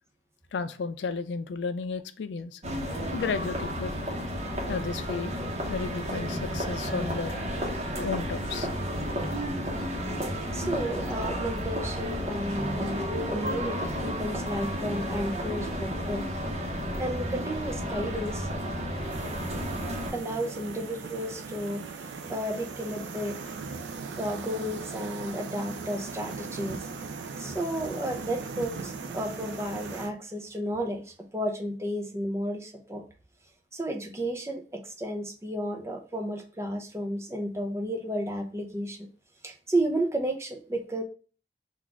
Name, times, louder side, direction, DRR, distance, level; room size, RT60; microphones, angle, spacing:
voice 1, 0.5-2.6 3.1-3.9 4.7-5.3 5.7-7.4 8.0-8.7, left 4 dB, 85° left, 0.4 m, -33 dB
sound 1, 2.6-20.1, equal, 35° right, 0.9 m, -32 dB
voice 2, 10.5-16.2 17.0-18.5 20.1-23.4 24.1-26.9 27.4-33.0 33.7-39.1 39.4-41.0, right 1 dB, 15° right, 0.6 m, -32 dB
sound 2, 19.1-30.1, right 4 dB, 90° right, 0.4 m, -39 dB
3.9 x 2.4 x 4.5 m
head